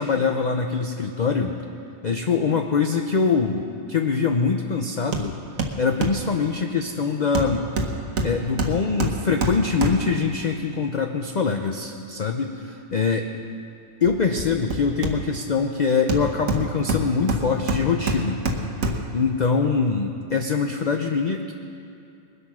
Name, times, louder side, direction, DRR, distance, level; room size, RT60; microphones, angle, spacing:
voice 1, 0.0-1.6 2.0-3.6 3.9-5.4 5.8-7.7 8.2-13.2 14.0-18.4 19.1-21.5, left 5 dB, 45° left, 4 dB, 0.6 m, -23 dB
Hammer, 5.1-5.3 5.6-6.3 7.4-10.3 14.0-15.5 16.1-19.2 19.6-19.7, right 2 dB, 85° right, 1.5 m, -26 dB
21.0 x 8.1 x 6.1 m, 2.5 s
omnidirectional pair, 1.4 m